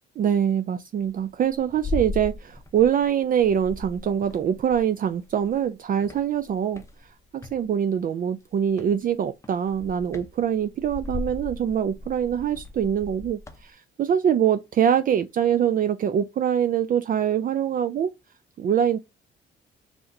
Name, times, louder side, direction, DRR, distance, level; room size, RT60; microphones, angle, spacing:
voice 1, 0.2-6.8 7.3-18.1 18.6-19.0, right 9 dB, 45° right, 0.4 m, -24 dB
sound 1, 1.0-3.1 3.4-5.6 6.0-7.6 8.7-9.0 9.4-13.7, left 3 dB, 15° left, 0.6 m, -37 dB
4.0 x 2.9 x 2.6 m
cardioid pair, 90°, 20 cm